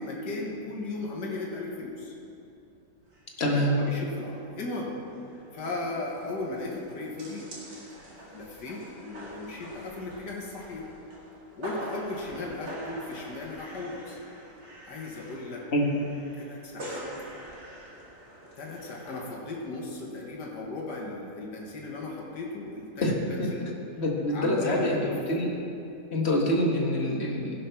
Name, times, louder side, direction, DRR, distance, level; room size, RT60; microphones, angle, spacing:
voice 1, 0.0-2.1 3.5-5.0 5.3-7.5 7.9-10.9 11.6-14.2 14.8-15.7 16.3-17.0 18.6-23.7 24.3-25.1, left 2 dB, 80° left, -2 dB, 2.1 m, -36 dB
sound 1, 3.1-3.3 3.5-3.6 4.1-4.4 4.7-4.8 5.0-19.2, right 1 dB, 60° right, 2.6 m, -44 dB
voice 2, 3.4-3.7 15.7-15.9 23.0-23.1 23.4-23.5 24.0-25.5 26.1-27.6, left 1 dB, 40° left, -1 dB, 1.7 m, -26 dB
16.0 x 6.4 x 5.8 m, 2.8 s
omnidirectional pair, 1.8 m